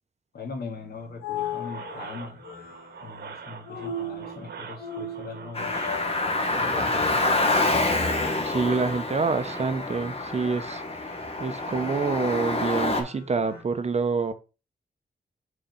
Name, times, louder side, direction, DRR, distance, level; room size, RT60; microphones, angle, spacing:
voice 1, 0.3-2.4 3.0-5.7 6.5-7.2, left 4 dB, 70° left, 2.1 m, -39 dB
sound 1, 0.7-13.6, left 3 dB, 90° left, 2.5 m, -40 dB
sound 2, 1.4-10.0, right 6 dB, 75° right, 1.2 m, -43 dB
Car, 5.5-13.0, left 2 dB, 35° left, 1.6 m, -27 dB
voice 2, 8.4-10.8 11.4-14.3, right 4 dB, 40° right, 0.9 m, -27 dB
4.9 x 4.4 x 5.3 m
cardioid pair, 80°, 17 cm